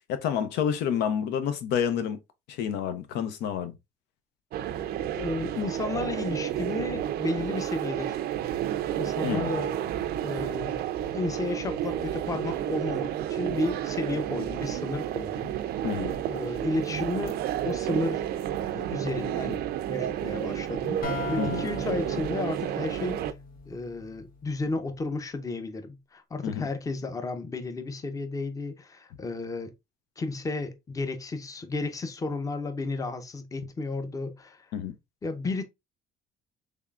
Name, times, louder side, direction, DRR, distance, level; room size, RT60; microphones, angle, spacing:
voice 1, 0.1-2.2 2.5-3.7 9.2-9.5 15.8-16.1 21.4-21.6 26.4-26.7 34.7-34.9, left 8 dB, 90° left, 0.6 m, -29 dB
sound 1, 4.5-23.3, right 11 dB, 65° right, 0.4 m, -31 dB
voice 2, 5.1-8.5 9.0-9.7 10.2-10.8 11.1-15.5 16.3-17.4 17.6-18.4 18.7-19.6 19.9-23.3 23.7-29.7 30.2-34.7 35.2-35.6, left 3 dB, 20° left, 0.6 m, -33 dB
sound 2, 21.0-24.7, left 5 dB, 60° left, 0.9 m, -39 dB
3.5 x 3.3 x 2.3 m
cardioid pair, 110°, 17 cm